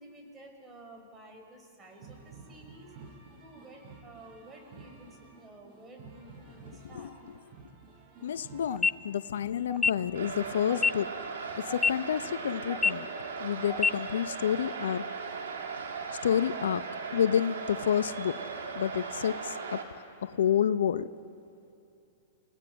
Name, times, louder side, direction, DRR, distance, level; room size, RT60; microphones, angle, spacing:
voice 1, 0.0-2.9 3.3-7.1, right 1 dB, 20° right, 2 dB, 5.3 m, -52 dB
sound 1, 1.8-10.5, right 4 dB, 40° right, 5.6 m, -52 dB
voice 2, 8.2-11.3 11.6-13.1 13.4-15.1 16.2-18.4 18.7-21.1, left 9 dB, 75° left, 15 dB, 0.6 m, -29 dB
sound 2, 8.7-8.9 9.7-9.9 10.7-10.9 11.7-11.9 12.7-12.9 13.7-13.9, left 4 dB, 15° left, 0.4 m, -25 dB
sound 3, 10.1-19.8, right 5 dB, 80° right, 3.0 m, -38 dB
29.5 x 18.5 x 6.3 m, 2.7 s
hypercardioid pair, 120°, 0 cm